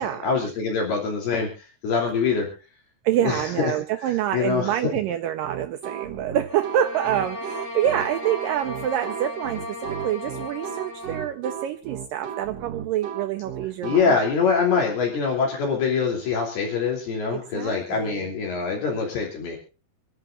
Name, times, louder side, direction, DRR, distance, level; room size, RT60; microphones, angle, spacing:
voice 1, 0.0-1.5 1.8-2.5 3.2-3.7 4.1-4.8 13.8-19.6, left 5 dB, 65° left, 0 dB, 4.9 m, -24 dB
voice 2, 3.0-14.2 17.3-18.3, right 11 dB, 80° right, 8 dB, 1.9 m, -27 dB
sound 1, 5.4-14.0, right 9 dB, 60° right, 1.8 m, -35 dB
sound 2, 6.5-11.3, left 1 dB, 40° left, 3.7 m, -36 dB
27.0 x 11.5 x 2.5 m, 0.34 s
omnidirectional pair, 4.9 m